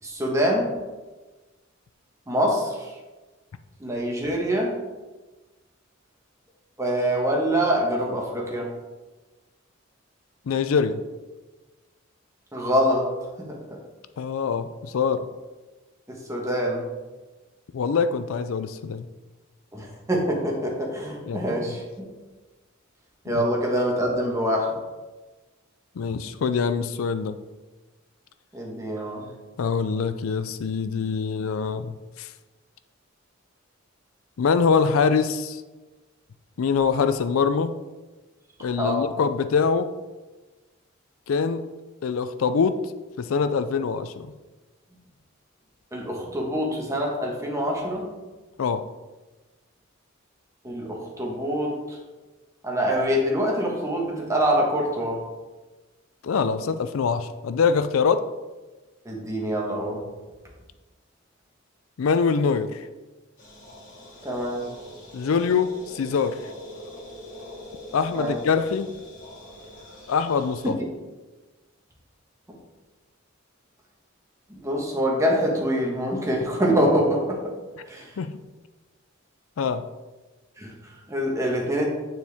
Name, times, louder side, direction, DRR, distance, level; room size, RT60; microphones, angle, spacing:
voice 1, 0.0-0.7 2.3-2.9 3.8-4.8 6.8-8.7 12.5-13.8 16.1-16.8 19.7-22.1 23.2-24.8 28.5-29.3 38.8-39.1 45.9-48.1 50.6-52.0 52.6-55.2 59.0-60.0 64.2-64.7 68.1-68.4 70.6-70.9 74.5-77.5 77.9-78.1 80.6-81.9, equal, 15° right, -1 dB, 1.4 m, -25 dB
voice 2, 10.5-11.0 14.2-15.3 17.7-19.1 21.3-21.5 23.3-23.4 26.0-27.4 29.6-32.3 34.4-35.6 36.6-37.8 38.6-39.9 41.3-41.6 42.0-42.8 43.2-44.3 48.6-48.9 56.2-58.3 62.0-62.8 65.1-66.4 67.9-68.9 70.1-70.8 78.2-78.3 79.6-79.9, left 5 dB, 85° left, 11 dB, 0.4 m, -24 dB
sound 1, 63.4-70.7, left 1 dB, 40° left, 2.3 m, -43 dB
9.4 x 4.5 x 3.5 m, 1.2 s
head